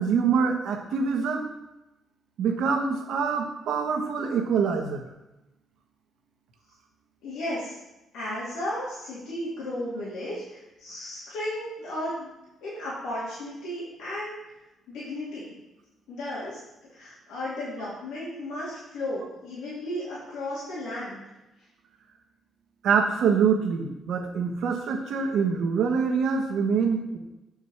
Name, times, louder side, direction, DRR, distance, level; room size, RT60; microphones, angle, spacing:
voice 1, 0.0-1.5 2.4-5.1 20.1-20.2 22.8-27.2, right 6 dB, 75° right, 3 dB, 1.3 m, -25 dB
voice 2, 7.2-7.8 8.1-12.3 12.6-14.4 14.9-15.5 16.1-16.6 16.9-21.2, left 1 dB, 90° left, -9 dB, 2.8 m, -34 dB
7.3 x 4.9 x 7.1 m, 0.97 s
cardioid pair, 90°, 0 cm